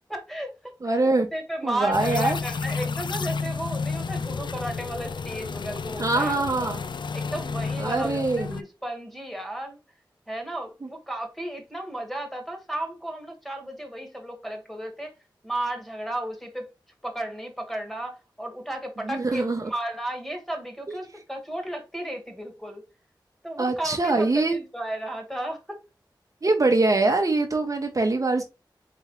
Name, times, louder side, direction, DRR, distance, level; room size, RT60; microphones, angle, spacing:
voice 1, 0.1-6.7 7.1-9.8 10.3-15.1 15.4-16.7 17.0-22.8 23.4-25.8, right 1 dB, 5° left, 1.5 m, -34 dB
voice 2, 0.8-1.3 1.6-2.4 6.0-6.8 7.8-8.6 19.0-19.7 20.9-21.0 23.6-24.6 26.4-28.4, right 2 dB, 45° right, 0.8 m, -23 dB
sound 1, 1.9-8.6, left 4 dB, 65° left, 0.3 m, -31 dB
4.2 x 3.6 x 3.0 m
wide cardioid pair, 55°, 8 cm